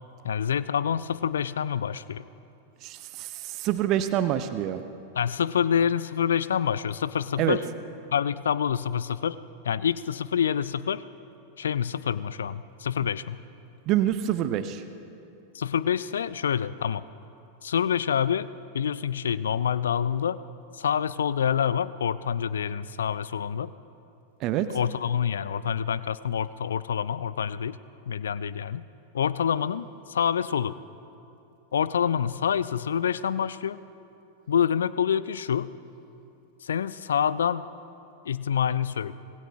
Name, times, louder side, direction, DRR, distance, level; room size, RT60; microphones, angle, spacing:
voice 1, 0.2-2.2 5.2-7.6 8.1-9.4 9.6-11.0 11.6-13.4 15.5-17.0 17.6-18.5 18.7-20.4 20.7-23.7 24.7-27.8 28.1-28.8 29.1-30.7 31.7-33.8 34.5-35.7 36.6-37.7 38.2-39.1, left 8 dB, 65° left, 17 dB, 0.3 m, -27 dB
voice 2, 2.8-4.8 7.4-7.6 13.9-14.8 24.4-24.7, right 12 dB, 40° right, 11 dB, 0.7 m, -26 dB
25.5 x 19.5 x 2.4 m, 2.8 s
figure-of-eight pair, 90°, 0 cm